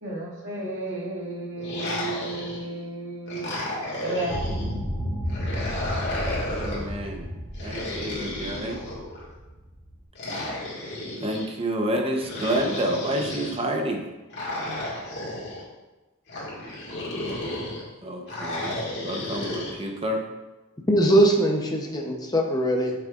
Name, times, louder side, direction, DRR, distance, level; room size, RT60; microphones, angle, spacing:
voice 1, 0.0-3.6 4.0-4.4, right 2 dB, 60° right, -4 dB, 2.1 m, -33 dB
sound 1, 1.6-2.8 3.3-4.7 5.3-6.9 7.5-9.3 10.2-11.5 12.2-13.6 14.3-15.6 16.3-17.8 18.3-19.7, left 1 dB, 55° left, 2.0 m, -33 dB
sound 2, 4.3-10.0, equal, 10° right, 2.2 m, -32 dB
voice 2, 6.4-7.3 7.6-8.8 11.2-14.0 18.0-20.2, right 1 dB, 25° right, 2 dB, 0.9 m, -29 dB
voice 3, 20.9-22.9, right 1 dB, 20° left, 1 dB, 0.9 m, -21 dB
8.9 x 6.8 x 2.5 m, 1.1 s
head